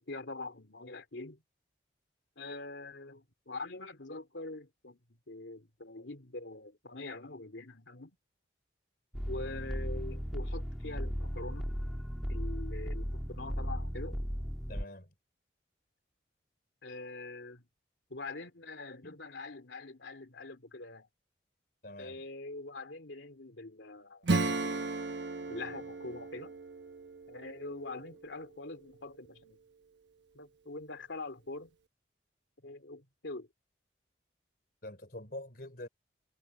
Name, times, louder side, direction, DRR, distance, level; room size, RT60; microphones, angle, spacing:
voice 1, 0.0-1.4 2.4-5.0 5.3-8.1 9.3-11.8 12.3-14.2 16.8-17.7 18.1-21.1 22.0-24.3 25.5-26.6 27.3-29.6 30.3-31.8 32.6-33.5, left 2 dB, 80° left, 2.7 m, -44 dB
sound 1, 9.1-14.8, equal, ahead, 1.6 m, -36 dB
voice 2, 14.7-15.1 19.0-19.2 21.8-22.2 34.8-35.9, left 1 dB, 50° left, 4.1 m, -45 dB
Acoustic guitar / Strum, 24.2-28.6, right 3 dB, 70° right, 1.1 m, -35 dB
head